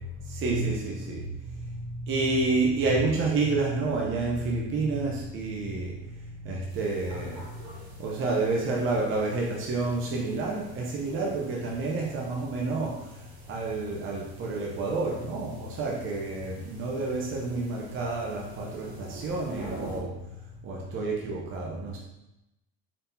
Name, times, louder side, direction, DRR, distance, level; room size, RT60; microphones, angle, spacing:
voice 1, 0.0-20.2 20.6-22.0, right 3 dB, 35° right, -2 dB, 0.7 m, -29 dB
sound 1, 6.7-20.0, right 2 dB, 55° right, 1.3 m, -48 dB
4.1 x 3.4 x 2.8 m, 0.92 s
supercardioid pair, 125°, 34 cm